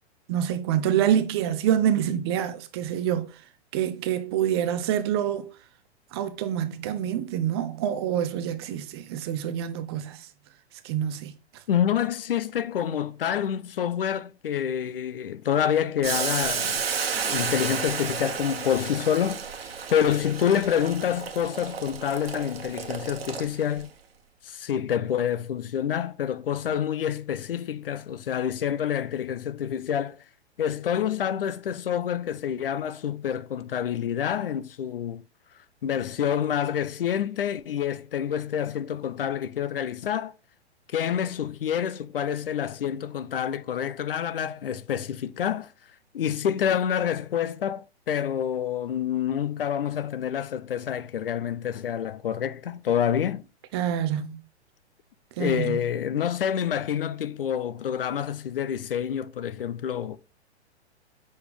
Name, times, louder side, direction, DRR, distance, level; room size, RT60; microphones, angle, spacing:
voice 1, 0.3-3.4 3.7-5.5 6.1-10.3 10.8-11.3 53.7-54.4 55.4-55.8, right 10 dB, 25° right, 0.5 m, -26 dB
voice 2, 11.7-16.8 17.2-19.4 19.9-23.9 24.4-30.2 30.6-35.2 35.8-40.3 40.9-45.7 46.1-53.4 55.4-60.2, left 9 dB, 55° left, 0.6 m, -27 dB
Boiling, 16.0-23.8, right 6 dB, 60° right, 1.2 m, -32 dB
6.9 x 5.3 x 3.4 m
figure-of-eight pair, 115°, 34 cm